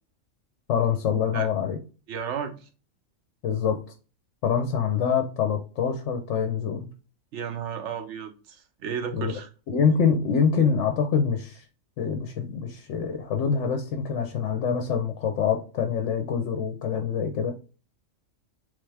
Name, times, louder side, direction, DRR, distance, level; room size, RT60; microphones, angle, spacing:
voice 1, 0.7-1.8 3.4-3.8 4.4-6.9 9.1-9.3 9.7-11.6 12.0-17.5, left 6 dB, 65° left, 0.9 m, -25 dB
voice 2, 2.1-2.7 7.3-9.5, right 7 dB, 65° right, 0.9 m, -33 dB
3.5 x 3.2 x 3.3 m
omnidirectional pair, 1.4 m